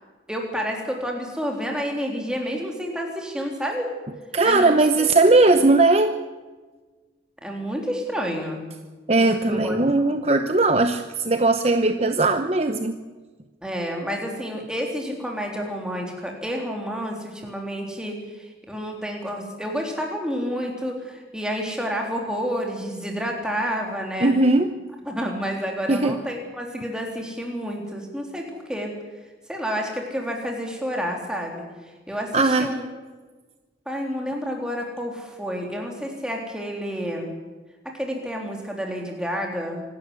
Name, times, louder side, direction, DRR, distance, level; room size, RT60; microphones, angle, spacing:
voice 1, 0.3-3.9 4.4-4.8 7.4-8.6 9.2-9.8 10.0-10.2 13.6-24.3 25.0-28.9 29.5-31.7 32.1-32.8 33.9-37.3 37.9-39.8, equal, 5° right, 1 dB, 3.5 m, -29 dB
voice 2, 4.3-6.1 9.1-13.0 24.2-24.7 25.9-26.2 32.3-32.7, right 2 dB, 35° right, 8 dB, 0.9 m, -19 dB
25.5 x 12.5 x 9.8 m, 1.3 s
head